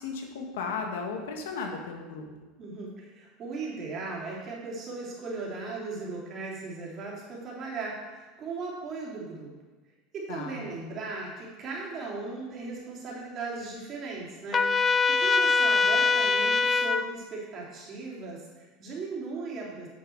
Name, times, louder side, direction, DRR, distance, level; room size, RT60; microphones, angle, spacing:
voice 1, 0.0-2.3 10.3-10.7, left 4 dB, 90° left, 3 dB, 1.5 m, -35 dB
voice 2, 2.6-9.5 10.1-19.9, right 3 dB, 40° right, -4 dB, 3.2 m, -37 dB
Trumpet, 14.5-17.0, left 4 dB, 25° left, 0.4 m, -23 dB
9.4 x 6.6 x 4.6 m, 1.2 s
supercardioid pair, 120°, 0 cm